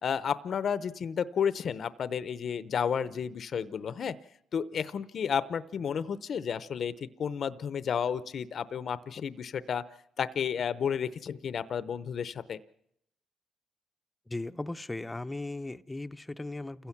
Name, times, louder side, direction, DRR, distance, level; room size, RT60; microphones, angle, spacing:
voice 1, 0.0-4.2 4.5-9.8 10.2-12.6, left 7 dB, 55° left, 14 dB, 0.7 m, -32 dB
voice 2, 14.3-16.9, left 2 dB, 15° left, 11 dB, 0.7 m, -37 dB
28.5 x 16.0 x 5.9 m, 0.77 s
cardioid pair, 90°, 0 cm